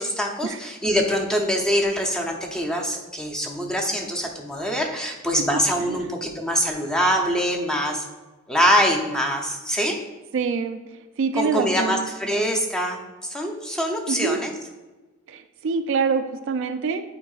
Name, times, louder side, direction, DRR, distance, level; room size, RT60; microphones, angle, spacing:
voice 1, 0.0-8.0 8.5-10.0 11.3-14.5, equal, 5° left, 1 dB, 0.6 m, -24 dB
voice 2, 10.3-10.8 11.2-12.1 14.1-14.4 15.3-17.0, right 5 dB, 60° right, 7 dB, 0.4 m, -25 dB
8.7 x 4.6 x 2.4 m, 1.1 s
head